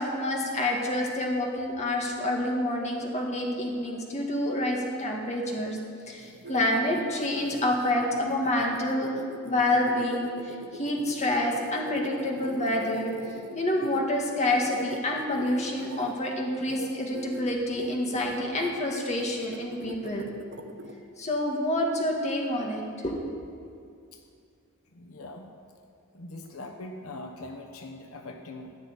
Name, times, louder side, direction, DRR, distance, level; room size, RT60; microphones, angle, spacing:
voice 1, 0.0-5.8 6.1-13.1 13.6-20.3 21.2-23.1, left 1 dB, 35° left, -1 dB, 2.0 m, -28 dB
sound 1, 6.2-14.0 14.5-16.1 16.6-16.9 17.1-17.4 17.7-18.7 19.2-20.9, right 1 dB, 55° right, 1.1 m, -41 dB
voice 2, 24.9-25.5 26.1-28.8, left 2 dB, 85° left, 4 dB, 1.1 m, -42 dB
15.0 x 6.1 x 9.7 m, 2.4 s
head